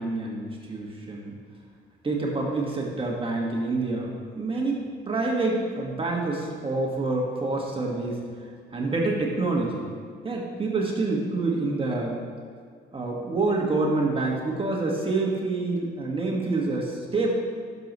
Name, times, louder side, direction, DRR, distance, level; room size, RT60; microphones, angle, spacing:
voice 1, 0.0-1.3 2.0-8.2 8.7-9.9 10.2-12.2 12.9-17.3, right 3 dB, 25° right, -2 dB, 1.7 m, -27 dB
11.5 x 6.7 x 3.2 m, 2.1 s
cardioid pair, 90°, 20 cm